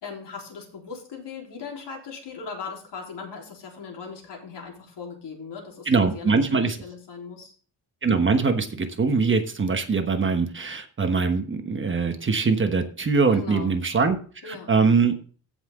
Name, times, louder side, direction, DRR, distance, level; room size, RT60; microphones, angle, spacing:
voice 1, 0.0-7.5 13.3-13.7 14.4-14.7, left 5 dB, 70° left, 1 dB, 3.7 m, -39 dB
voice 2, 5.9-6.8 8.0-14.2 14.4-15.1, right 4 dB, 30° right, 6 dB, 1.2 m, -22 dB
16.0 x 5.8 x 3.7 m, 0.41 s
wide cardioid pair, 180°, 43 cm